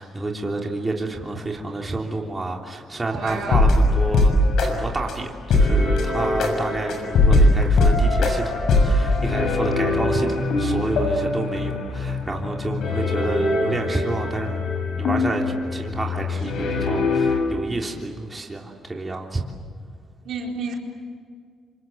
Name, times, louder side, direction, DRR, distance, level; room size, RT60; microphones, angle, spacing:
voice 1, 0.0-14.6 15.0-15.4 15.7-19.4, right 2 dB, 20° right, 0 dB, 3.3 m, -29 dB
voice 2, 3.1-3.6 20.2-20.7, right 4 dB, 75° right, 0 dB, 4.6 m, -30 dB
sound 1, 3.3-4.7 5.1-5.2 5.5-17.4, left 2 dB, 75° left, 6.5 m, -21 dB
27.0 x 26.5 x 7.9 m, 2.1 s
cardioid pair, 90°, 0 cm